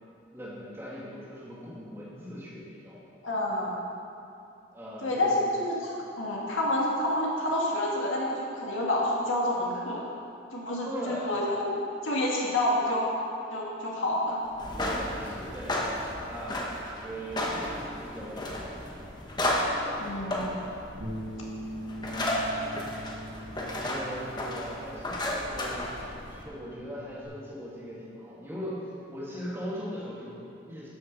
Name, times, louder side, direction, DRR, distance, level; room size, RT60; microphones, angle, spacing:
voice 1, 0.3-3.0 4.7-5.4 10.8-11.4 14.8-16.0 16.2-19.0 23.7-25.9 26.3-30.9, equal, 15° right, -7 dB, 2.4 m, -40 dB
voice 2, 3.2-3.7 5.0-10.0 10.5-13.0 13.5-14.4 20.0-20.5 22.2-22.5, left 1 dB, 85° left, -4 dB, 2.1 m, -28 dB
sound 1, 14.5-26.4, left 1 dB, 20° left, 1.1 m, -33 dB
Bass guitar, 21.0-27.2, equal, 85° right, 2.1 m, -42 dB
13.5 x 6.5 x 5.4 m, 2.6 s
head